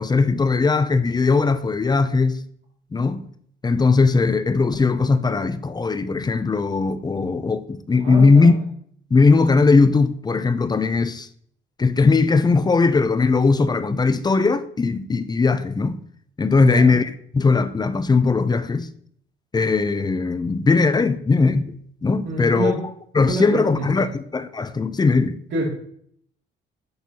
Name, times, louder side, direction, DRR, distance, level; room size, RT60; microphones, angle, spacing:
voice 1, 0.0-2.4 2.9-3.2 3.6-8.6 9.1-11.3 11.8-16.0 16.4-18.9 19.5-21.7 22.0-22.7 23.1-25.4, left 4 dB, 20° left, 0.5 m, -19 dB
voice 2, 8.0-8.5 16.6-16.9 22.3-22.7 23.2-24.1 25.5-25.7, right 2 dB, 70° right, 2.4 m, -26 dB
10.0 x 4.3 x 2.8 m
cardioid pair, 90°, 20 cm